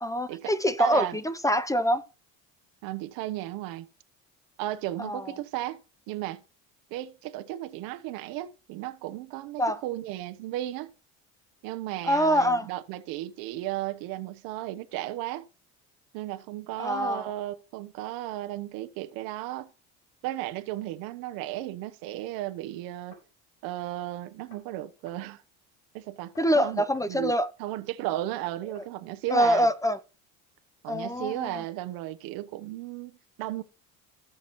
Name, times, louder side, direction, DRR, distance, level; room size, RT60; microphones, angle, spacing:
voice 1, 0.0-2.0 5.0-5.4 9.6-9.8 12.0-12.7 16.8-17.3 26.4-27.5 29.3-30.0 30.9-31.6, equal, 10° left, 0.6 m, -25 dB
voice 2, 0.8-1.2 2.8-3.9 4.6-5.8 6.1-6.4 6.9-10.9 11.6-15.5 16.1-19.7 20.2-23.2 23.6-25.4 25.9-27.3 27.6-29.7 30.8-33.6, right 15 dB, 80° right, 1.0 m, -34 dB
sound 1, 21.5-21.7 22.8-23.3 24.5-25.2 26.3-27.1 28.5-28.9 29.8-30.0, left 1 dB, 70° left, 5.1 m, -55 dB
17.5 x 6.2 x 3.0 m
supercardioid pair, 105°, 35 cm